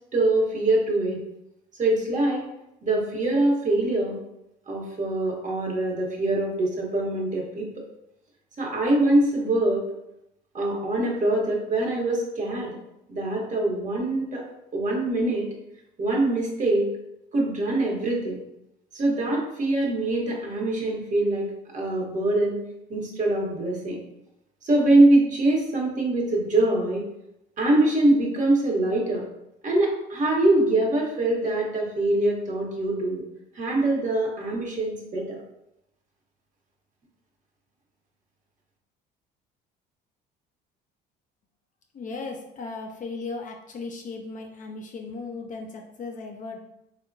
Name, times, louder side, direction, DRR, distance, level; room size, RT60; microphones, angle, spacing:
voice 1, 0.1-1.2 1.8-2.4 2.8-4.2 4.7-7.7 8.6-9.8 10.5-12.7 13.1-14.4 14.7-15.5 16.0-16.9 17.3-18.4 18.9-21.5 21.7-22.6 22.9-24.0 24.6-27.0 27.6-29.2 29.6-33.2 33.5-35.4, right 2 dB, 35° right, -1 dB, 1.0 m, -23 dB
voice 2, 41.9-46.6, left 3 dB, 40° left, 2 dB, 0.5 m, -36 dB
3.6 x 2.1 x 2.5 m, 0.85 s
supercardioid pair, 75°, 21 cm